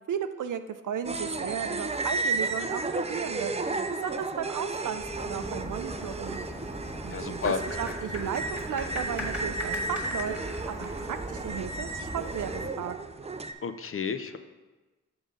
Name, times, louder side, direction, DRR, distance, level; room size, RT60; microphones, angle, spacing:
voice 1, 0.1-2.8 3.1-3.7 4.0-6.4 7.0-10.3 10.7-13.0, right 8 dB, 75° right, 10 dB, 0.5 m, -35 dB
sound 1, 1.0-13.5, right 3 dB, 20° right, 0.4 m, -33 dB
sound 2, 5.0-12.7, equal, 5° right, 1.8 m, -38 dB
voice 2, 7.1-7.6 13.6-14.4, left 6 dB, 45° left, 10 dB, 0.5 m, -31 dB
6.1 x 3.9 x 5.2 m, 1.2 s
cardioid pair, 45°, 31 cm